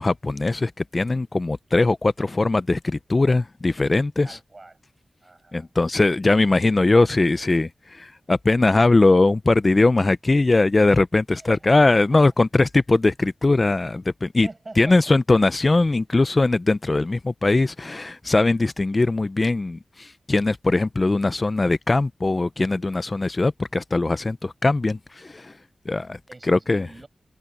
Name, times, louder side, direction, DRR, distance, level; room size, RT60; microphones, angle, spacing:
voice 1, 0.0-4.4 5.5-14.5 14.8-25.5 25.9-26.2 26.5-26.9, left 2 dB, 35° left, 0.6 m, -20 dB
voice 2, 4.2-4.8 5.2-5.7 11.3-12.0 14.4-15.0 26.3-27.1, right 2 dB, 35° right, 7.0 m, -43 dB
cardioid pair, 65°, 0 cm